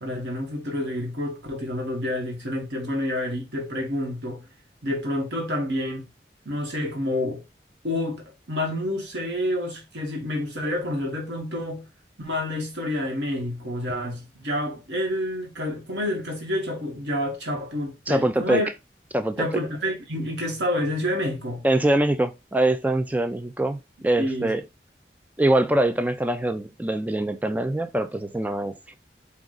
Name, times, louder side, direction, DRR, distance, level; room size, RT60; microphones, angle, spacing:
voice 1, 0.0-4.5 4.8-6.1 6.4-7.4 7.8-11.9 12.2-18.7 19.4-21.6 24.2-24.5, left 1 dB, 85° right, 1.4 m, -28 dB
voice 2, 18.1-18.6 19.1-19.5 21.6-24.6 25.4-28.9, right 1 dB, 10° right, 0.4 m, -23 dB
4.8 x 2.4 x 3.8 m
head